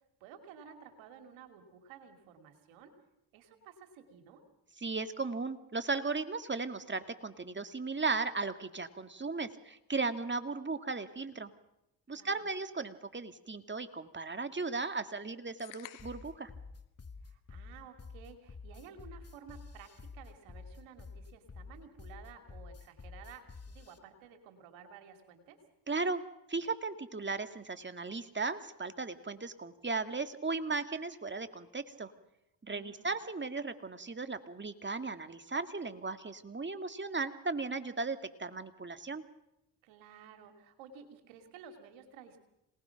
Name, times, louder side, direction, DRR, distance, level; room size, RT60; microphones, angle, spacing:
voice 1, 0.2-2.9 3.3-4.4 12.1-12.5 17.2-25.6 32.6-33.2 39.8-42.4, right 7 dB, 90° right, 6 dB, 2.7 m, -54 dB
voice 2, 4.8-11.5 12.1-16.5 25.9-26.2 26.5-32.1 32.6-39.2, right 3 dB, 25° right, 9 dB, 2.2 m, -36 dB
sound 1, 15.6-16.4, left 15 dB, 85° left, 1.5 m, -51 dB
sound 2, 16.0-24.0, left 4 dB, 35° left, 2.3 m, -49 dB
26.5 x 19.5 x 5.9 m, 0.87 s
supercardioid pair, 50°, 44 cm